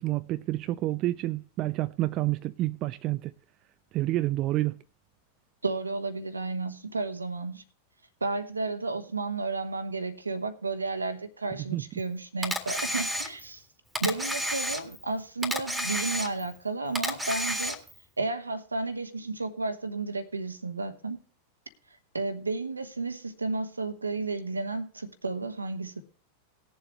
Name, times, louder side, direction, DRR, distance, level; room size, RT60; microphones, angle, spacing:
voice 1, 0.0-3.3 3.9-4.8 11.7-11.8, right 16 dB, 35° right, 0.4 m, -29 dB
voice 2, 5.6-7.6 8.2-13.6 14.0-17.8 18.2-21.2 22.1-26.0, right 3 dB, 80° right, 1.1 m, -32 dB
Camera, 12.4-13.6 14.0-15.1 15.4-16.6 17.0-18.0, equal, 5° right, 1.9 m, -31 dB
19.5 x 7.3 x 3.1 m
figure-of-eight pair, 90°, 0 cm